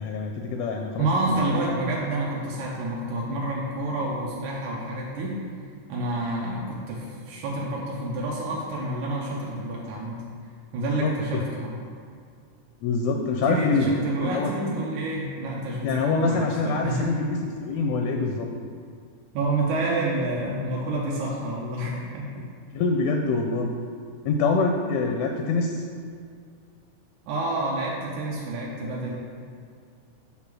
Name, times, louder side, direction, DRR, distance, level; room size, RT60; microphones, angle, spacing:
voice 1, 0.0-1.1 1.5-1.6 11.0-11.1 12.8-13.9 14.2-14.5 15.8-18.5 22.7-23.7 24.2-25.8, left 4 dB, 80° left, 3 dB, 1.6 m, -25 dB
voice 2, 1.0-5.4 5.9-10.2 10.7-11.8 13.4-17.1 19.3-22.5 27.3-29.1, right 2 dB, 80° right, -4 dB, 2.3 m, -28 dB
7.6 x 3.7 x 6.1 m, 2.2 s
omnidirectional pair, 3.5 m